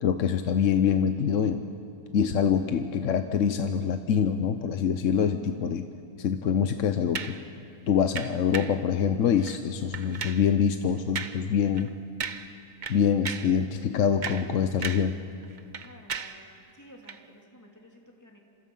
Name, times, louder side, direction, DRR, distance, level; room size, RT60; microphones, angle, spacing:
voice 1, 0.0-1.6 2.1-5.8 6.2-7.4 7.9-11.9 12.9-15.2, left 7 dB, 60° left, 8 dB, 1.0 m, -25 dB
sound 1, 7.1-7.4 8.2-8.8 9.4-9.6 9.9-10.5 11.2-11.5 11.8-11.9 12.2-12.6 12.8-13.6 14.0-15.2 15.4-16.4 17.0-17.2, right 6 dB, 40° right, 0.7 m, -36 dB
voice 2, 15.8-16.3 16.7-18.4, equal, 10° left, 0 dB, 2.8 m, -52 dB
28.5 x 26.5 x 5.6 m, 2.5 s
omnidirectional pair, 1.7 m